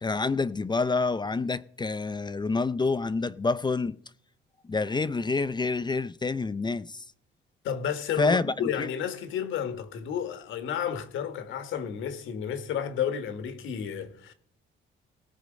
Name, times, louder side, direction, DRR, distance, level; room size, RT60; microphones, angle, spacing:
voice 1, 0.0-4.0 4.7-7.0 8.2-8.9, left 3 dB, 20° left, 0.5 m, -27 dB
voice 2, 7.6-14.3, left 8 dB, 80° left, 1.6 m, -31 dB
18.5 x 6.7 x 5.2 m
cardioid pair, 90°, 20 cm